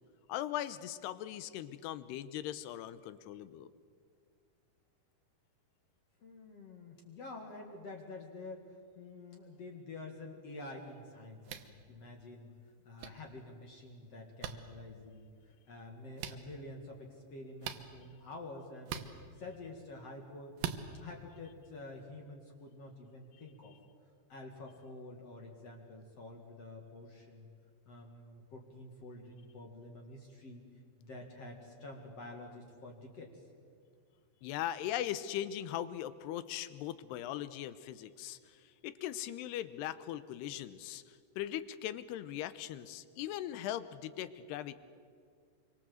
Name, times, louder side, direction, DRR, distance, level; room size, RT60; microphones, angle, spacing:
voice 1, 0.3-3.7 34.4-38.4 38.8-41.0 41.4-44.8, left 12 dB, 80° left, 14 dB, 2.9 m, -39 dB
voice 2, 6.2-12.5 12.9-15.3 15.7-20.6 20.8-23.7 24.3-27.5 27.9-30.7 31.0-33.3 35.0-35.1, left 2 dB, 45° left, 1 dB, 2.6 m, -48 dB
sound 1, 11.4-11.7 13.0-13.1 14.4-14.5 16.2-16.4 17.6-17.8 18.8-19.1 20.6-20.8, right 10 dB, 70° right, 2.6 m, -39 dB
26.5 x 24.0 x 7.8 m, 2.2 s
omnidirectional pair, 4.8 m